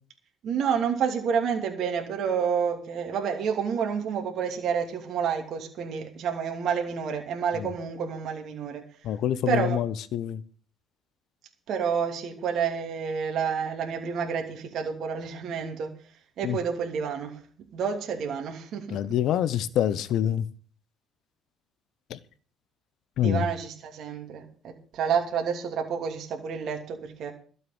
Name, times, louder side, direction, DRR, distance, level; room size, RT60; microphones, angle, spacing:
voice 1, 0.4-8.8 9.5-9.8 11.7-16.0 16.4-17.4 17.7-19.2 23.2-27.3, right 7 dB, 60° right, 2.7 m, -29 dB
voice 2, 9.0-10.4 16.4-16.6 18.9-20.5 22.1-22.2 23.2-23.4, left 10 dB, 65° left, 1.0 m, -26 dB
12.5 x 6.8 x 8.7 m
supercardioid pair, 65°, 0 cm